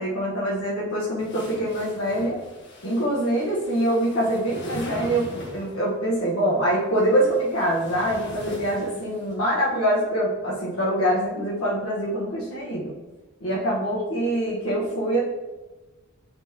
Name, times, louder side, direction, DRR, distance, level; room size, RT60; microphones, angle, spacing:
voice 1, 0.0-2.4 2.8-12.9 13.4-15.2, right 1 dB, 80° left, -6 dB, 1.4 m, -24 dB
sound 1, 1.2-5.9 6.9-9.3, left 1 dB, 60° left, 1.4 m, -40 dB
9.0 x 4.5 x 2.9 m, 1.1 s
head